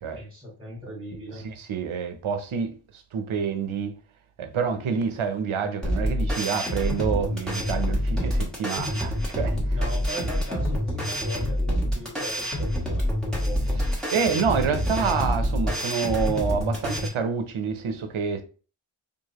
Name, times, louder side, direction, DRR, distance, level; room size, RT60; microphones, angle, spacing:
voice 1, 0.1-1.5 9.7-13.8, equal, 15° right, 1.8 m, -38 dB
voice 2, 1.4-3.9 4.4-9.8 14.1-18.4, right 6 dB, 75° right, 0.8 m, -27 dB
sound 1, 5.8-17.1, equal, ahead, 1.4 m, -26 dB
4.7 x 2.6 x 2.9 m
wide cardioid pair, 145°, 49 cm